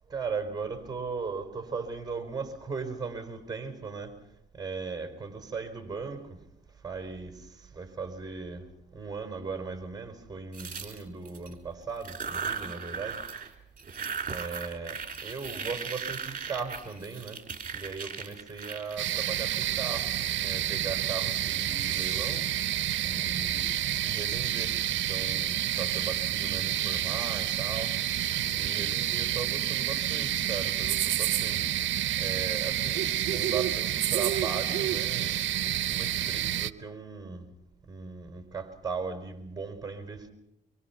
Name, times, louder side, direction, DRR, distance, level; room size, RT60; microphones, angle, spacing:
voice 1, 0.1-4.1 4.6-6.4 6.8-7.3 7.7-8.6 8.9-13.2 14.3-17.4 17.7-20.1 20.4-22.5 23.0-23.8 24.0-28.0 28.5-31.7 32.2-37.4 37.9-40.3, right 4 dB, 20° right, 4.5 m, -38 dB
sound 1, 10.5-11.5 12.0-13.5 13.8-20.1, right 6 dB, 40° right, 3.5 m, -38 dB
sound 2, 19.0-36.7, right 12 dB, 70° right, 0.8 m, -29 dB
25.0 x 23.5 x 5.9 m
cardioid pair, 90°, 20 cm